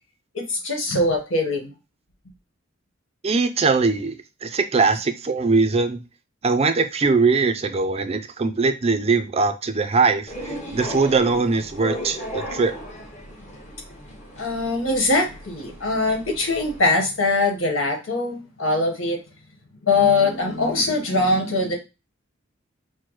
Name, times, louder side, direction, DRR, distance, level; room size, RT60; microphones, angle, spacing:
voice 1, 0.3-1.7 14.4-19.2 19.9-21.8, left 2 dB, 90° left, 1.3 m, -22 dB
voice 2, 3.2-6.0 6.4-12.7, right 4 dB, 30° right, 0.4 m, -21 dB
sound 1, 10.3-16.9, equal, 35° left, 1.1 m, -36 dB
5.9 x 2.1 x 3.1 m
head